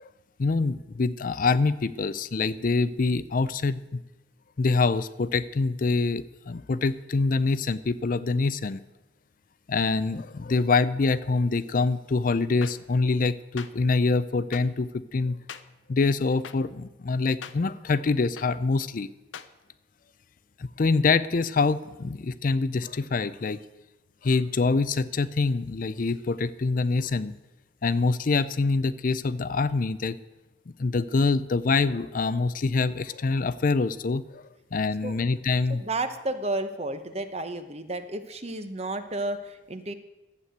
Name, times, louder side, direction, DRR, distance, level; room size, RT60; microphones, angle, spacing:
voice 1, 0.4-4.0 4.6-8.8 9.7-15.4 15.9-19.1 20.6-23.6 24.2-27.3 27.8-30.2 30.8-34.4 34.7-35.8, left 3 dB, 45° left, 15 dB, 0.4 m, -25 dB
sound 1, 12.6-12.7 13.6-13.7 14.5-14.6 15.5-15.6 16.4-16.5 17.4-17.5 18.4-18.5 19.3-19.5, left 7 dB, 85° left, 0.7 m, -39 dB
voice 2, 35.7-39.9, right 2 dB, 35° right, 9 dB, 1.0 m, -32 dB
12.5 x 8.4 x 7.9 m, 1.0 s
head